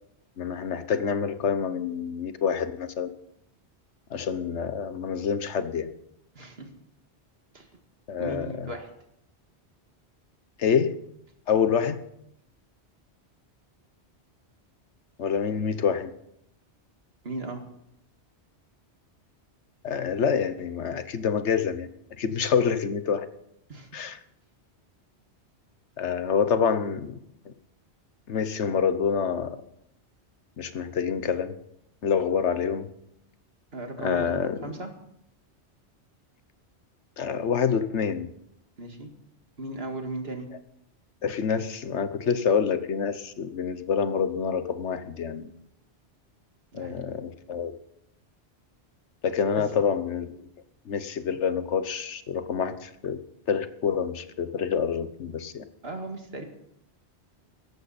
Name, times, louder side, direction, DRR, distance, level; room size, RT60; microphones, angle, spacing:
voice 1, 0.4-3.1 4.1-5.9 8.1-8.7 10.6-11.0 11.5-12.0 15.2-16.1 19.8-21.9 22.2-23.3 23.9-24.2 26.0-27.2 27.4-27.5 28.3-29.6 30.6-31.5 32.0-32.9 34.0-34.6 37.2-38.3 41.2-45.5 46.7-47.7 49.2-50.5 50.8-53.2 53.5-55.6, left 6 dB, 85° left, 12 dB, 1.3 m, -27 dB
voice 2, 6.4-6.7 7.5-7.7 8.2-8.9 17.2-17.6 23.7-23.9 33.7-34.9 38.8-39.1 39.6-40.5 46.7-47.0 55.8-56.4, right 2 dB, 60° right, 4 dB, 2.3 m, -36 dB
17.5 x 14.0 x 4.2 m, 0.77 s
omnidirectional pair, 1.1 m